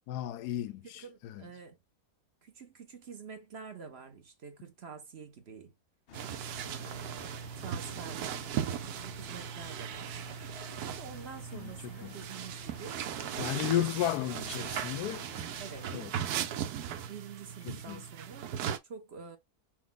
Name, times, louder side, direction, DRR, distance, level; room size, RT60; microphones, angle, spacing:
voice 1, 0.1-1.4 11.5-12.1 13.4-15.2 15.9-16.1 17.7-18.0, left 12 dB, 90° left, 1.1 m, -34 dB
voice 2, 0.8-1.8 2.4-5.7 6.6-10.2 10.9-13.0 13.5-13.9 14.3-14.8 15.6-16.0 17.1-18.5 18.8-19.4, right 6 dB, 50° right, 1.0 m, -47 dB
sound 1, 6.1-15.9, left 8 dB, 60° left, 0.6 m, -53 dB
sound 2, 6.1-18.8, right 9 dB, 85° right, 1.2 m, -38 dB
6.0 x 2.2 x 3.8 m
omnidirectional pair, 1.6 m